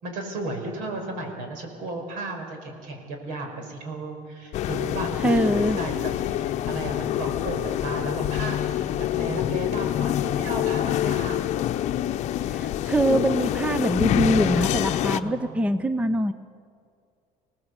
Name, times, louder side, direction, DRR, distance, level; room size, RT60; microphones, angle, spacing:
voice 1, 0.0-6.1 6.4-11.4 15.1-15.6, right 2 dB, 75° right, 4 dB, 5.5 m, -34 dB
sound 1, 4.5-15.2, left 12 dB, 55° left, 0.8 m, -26 dB
voice 2, 5.2-5.8 12.5-16.3, right 1 dB, 10° right, 12 dB, 0.6 m, -23 dB
26.0 x 18.5 x 8.2 m, 2.3 s
cardioid pair, 145°, 14 cm